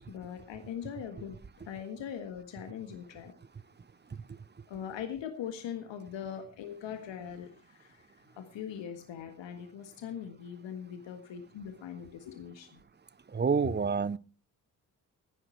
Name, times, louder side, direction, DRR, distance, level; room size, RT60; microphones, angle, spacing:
voice 1, 0.0-3.3 4.1-4.2 4.7-8.1 8.4-12.8, left 8 dB, 70° left, 1.7 m, -41 dB
voice 2, 13.3-14.2, right 5 dB, 20° right, 0.7 m, -27 dB
16.0 x 9.9 x 4.5 m
hypercardioid pair, 40°, 46 cm